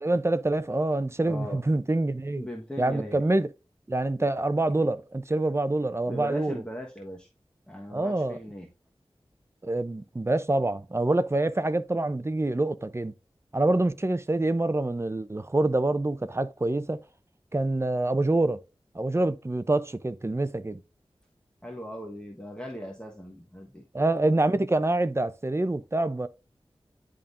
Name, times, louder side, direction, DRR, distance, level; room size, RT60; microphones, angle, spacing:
voice 1, 0.0-2.5 2.8-3.5 3.9-6.6 7.9-8.4 9.6-13.1 13.5-17.0 17.5-18.6 18.9-20.8 23.9-26.3, right 2 dB, 25° right, 0.6 m, -26 dB
voice 2, 1.2-1.6 2.3-3.2 4.2-4.3 6.1-7.3 7.7-8.7 21.6-23.8, equal, 10° left, 1.3 m, -38 dB
10.5 x 3.7 x 2.5 m
wide cardioid pair, 50°, 10 cm